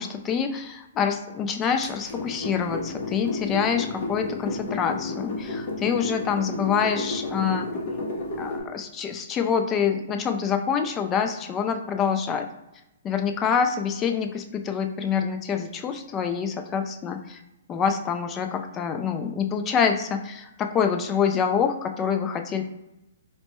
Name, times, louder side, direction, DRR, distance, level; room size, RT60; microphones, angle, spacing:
voice 1, 0.0-7.7 8.4-12.5 13.1-17.4 17.7-22.6, left 7 dB, 20° left, 6 dB, 0.4 m, -26 dB
sound 1, 1.8-8.6, left 2 dB, 50° left, 0.9 m, -32 dB
4.3 x 2.1 x 3.0 m, 0.93 s
hypercardioid pair, 135°, 0 cm